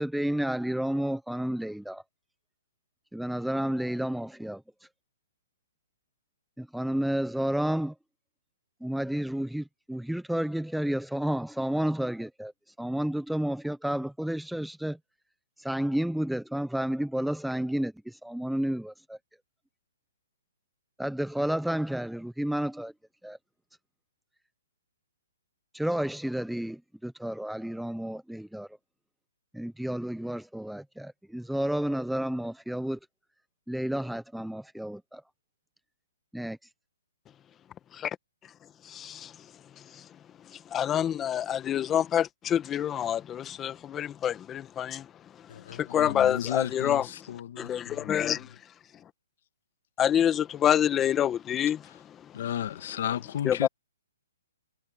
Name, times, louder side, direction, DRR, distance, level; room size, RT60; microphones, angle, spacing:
voice 1, 0.0-2.0 3.1-4.6 6.6-7.9 8.8-12.5 12.8-15.0 15.6-19.2 21.0-22.9 23.2-23.4 25.7-28.7 29.5-33.0 33.7-35.2 36.3-36.6, right 1 dB, ahead, 0.8 m, -31 dB
voice 2, 38.9-39.3 40.7-45.0 45.8-47.1 47.6-48.5 50.0-51.8 53.4-53.7, left 10 dB, 15° left, 1.5 m, -27 dB
voice 3, 45.5-48.4 52.3-53.7, left 10 dB, 55° left, 2.1 m, -34 dB
hypercardioid pair, 155°, 0 cm